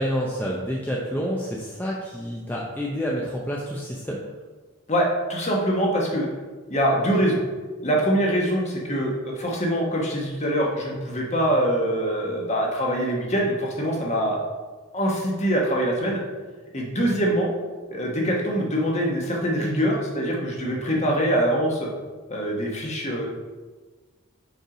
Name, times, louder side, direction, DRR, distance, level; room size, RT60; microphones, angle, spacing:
voice 1, 0.0-4.2, equal, 10° left, -3 dB, 0.6 m, -28 dB
voice 2, 4.9-6.3 6.7-7.4 7.8-14.4 14.9-16.2 16.7-17.5 17.9-21.9 22.3-23.3, equal, 30° left, -2 dB, 1.2 m, -24 dB
5.4 x 4.5 x 4.9 m, 1.3 s
head